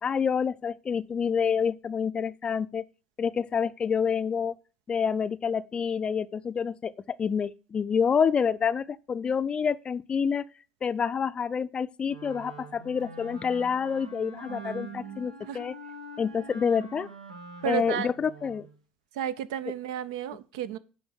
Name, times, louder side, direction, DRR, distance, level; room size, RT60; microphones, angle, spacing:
voice 1, 0.0-2.8 3.2-4.6 4.9-10.5 10.8-15.7 16.2-17.1 17.6-18.7, left 6 dB, 30° left, 0.5 m, -28 dB
Wind instrument woodwind instrument, 12.1-18.7, right 1 dB, 90° right, 1.5 m, -45 dB
voice 2, 14.5-15.6 17.6-18.1 19.1-20.8, right 10 dB, 65° right, 0.6 m, -33 dB
10.5 x 3.8 x 7.0 m
figure-of-eight pair, 70°, 3 cm